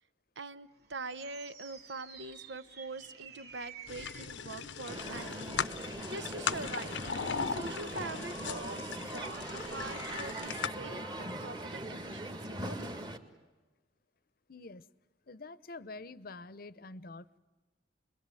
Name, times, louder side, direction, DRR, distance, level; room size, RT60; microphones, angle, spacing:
voice 1, 0.4-6.9 7.4-13.1, right 3 dB, 85° right, 13 dB, 1.0 m, -44 dB
sound 1, 0.7-13.1, right 4 dB, 60° right, 2.5 m, -52 dB
sound 2, 3.9-10.7, left 6 dB, 85° left, 0.8 m, -38 dB
Crowd, 4.9-13.2, right 1 dB, 25° right, 1.9 m, -41 dB
voice 2, 14.5-14.9 15.3-17.4, left 3 dB, 55° left, 17 dB, 0.8 m, -47 dB
27.0 x 22.0 x 9.2 m, 1.2 s
head